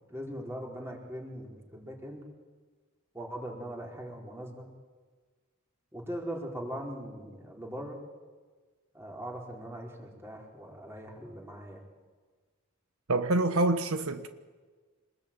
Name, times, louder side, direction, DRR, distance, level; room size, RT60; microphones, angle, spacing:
voice 1, 0.1-2.2 3.1-4.7 5.9-8.0 8.9-11.8, equal, 10° right, 4.6 m, -40 dB
voice 2, 13.1-14.3, right 2 dB, 80° right, 1.2 m, -26 dB
26.5 x 20.5 x 9.1 m
head